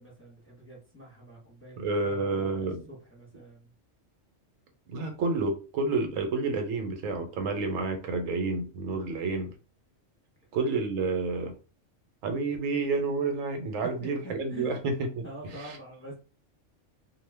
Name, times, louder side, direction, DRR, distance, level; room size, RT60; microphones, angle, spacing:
voice 1, 0.0-3.7 14.0-14.8 15.2-16.1, equal, 10° left, 0.7 m, -46 dB
voice 2, 1.8-2.8 4.9-9.5 10.5-11.5 12.2-15.3 15.6-15.7, right 3 dB, 80° right, 1.0 m, -29 dB
2.4 x 2.1 x 3.3 m
omnidirectional pair, 1.4 m